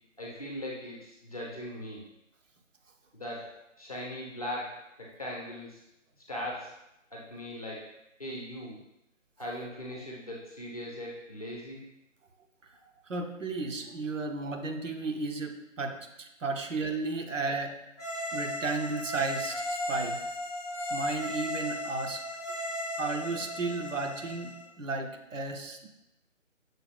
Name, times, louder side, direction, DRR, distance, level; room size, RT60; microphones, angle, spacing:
voice 1, 0.2-2.0 3.1-5.8 6.3-6.7 7.1-7.9 8.2-8.8 9.4-11.8 18.2-18.3 22.6-22.7, left 1 dB, 30° left, -4 dB, 0.7 m, -39 dB
voice 2, 13.1-17.8 18.3-20.2 20.9-22.2 23.0-25.9, right 3 dB, 75° right, 4 dB, 0.7 m, -34 dB
sound 1, 18.0-24.6, left 1 dB, 20° right, 0.6 m, -36 dB
6.4 x 2.2 x 3.3 m, 0.88 s
figure-of-eight pair, 160°, 39 cm